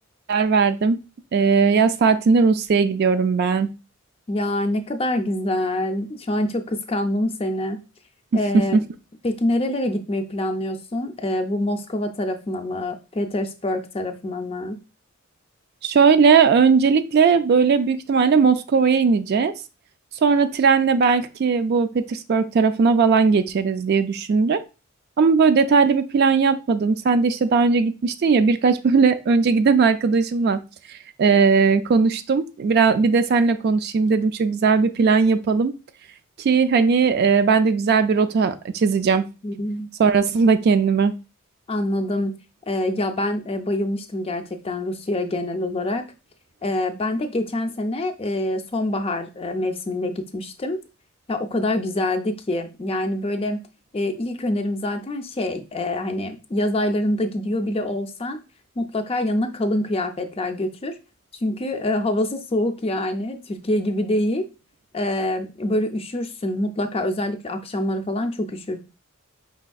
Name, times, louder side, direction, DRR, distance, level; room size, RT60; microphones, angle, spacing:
voice 1, 0.3-1.0 1.3-3.7 8.3-8.8 15.8-19.5 20.2-24.6 25.2-30.6 30.9-35.7 36.4-39.3 40.0-41.1, right 5 dB, 50° right, 10 dB, 0.3 m, -18 dB
voice 2, 4.3-7.8 8.3-8.8 9.2-14.8 39.4-39.9 41.7-42.4 42.7-46.1 46.6-50.8 51.3-53.6 53.9-58.4 58.8-60.9 61.4-64.5 64.9-68.8, left 1 dB, 25° left, 7 dB, 0.4 m, -25 dB
5.0 x 3.5 x 2.3 m, 0.30 s
head